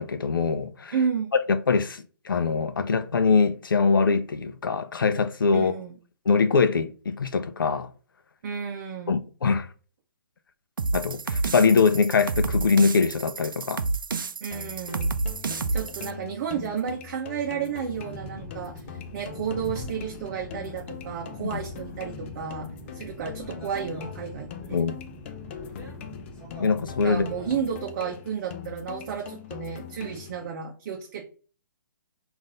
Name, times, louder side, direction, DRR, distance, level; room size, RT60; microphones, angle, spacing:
voice 1, 0.0-0.9 1.5-5.7 6.3-7.9 9.1-9.7 10.9-13.8 21.4-21.6 24.7-24.9 26.6-27.3, left 5 dB, 85° left, 0.5 m, -23 dB
voice 2, 0.9-1.3 5.5-6.0 8.4-9.2 14.4-15.2 15.7-18.8 19.1-24.8 27.0-31.3, right 7 dB, 45° right, 0.7 m, -32 dB
sound 1, 10.8-16.1, right 3 dB, 85° right, 0.4 m, -30 dB
sound 2, 14.5-30.5, left 9 dB, 35° left, 0.4 m, -42 dB
sound 3, 17.9-27.6, equal, 10° left, 1.6 m, -42 dB
3.9 x 2.6 x 3.7 m
hypercardioid pair, 140°, 11 cm